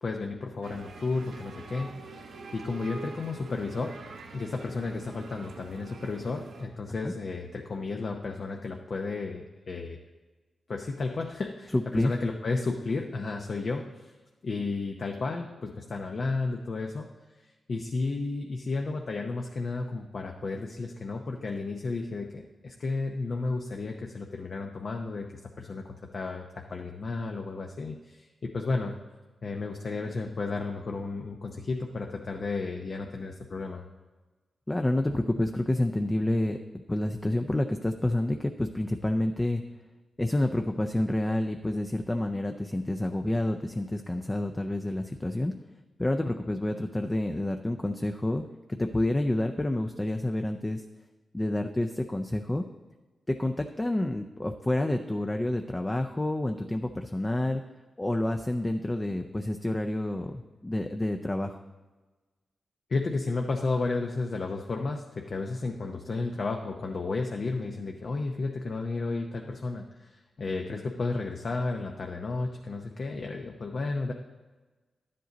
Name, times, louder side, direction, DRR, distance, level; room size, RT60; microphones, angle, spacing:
voice 1, 0.0-3.9 4.3-10.0 10.7-14.1 14.4-17.1 17.4-25.3 25.6-25.8 26.1-28.9 29.4-33.8 62.9-74.1, left 3 dB, 55° left, 2 dB, 0.7 m, -33 dB
sound 1, 0.6-6.7, right 3 dB, 85° right, 1.1 m, -45 dB
voice 2, 11.7-12.1 34.7-36.6 36.9-39.6 40.2-45.5 46.0-48.4 48.7-50.8 51.3-52.6 53.3-57.6 58.0-61.6, left 1 dB, 20° left, 5 dB, 0.5 m, -28 dB
11.5 x 7.6 x 4.0 m, 1.3 s
cardioid pair, 70°, 0 cm